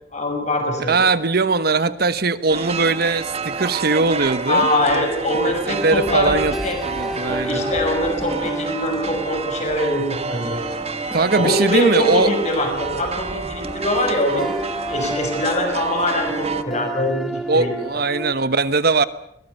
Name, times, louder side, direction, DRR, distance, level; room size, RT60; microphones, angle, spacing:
voice 1, 0.1-1.0 4.5-6.8 7.4-10.6 11.3-14.5 14.9-17.8, left 1 dB, 40° left, 4 dB, 6.3 m, -23 dB
voice 2, 0.9-4.7 5.7-6.5 6.8-7.6 11.1-12.3 15.0-15.1 17.5-19.1, right 3 dB, 55° right, 14 dB, 1.1 m, -20 dB
sound 1, 2.5-16.6, right 4 dB, 35° right, 1.4 m, -29 dB
sound 2, 4.5-18.3, equal, ahead, 0.8 m, -31 dB
21.5 x 18.5 x 8.3 m, 0.73 s
head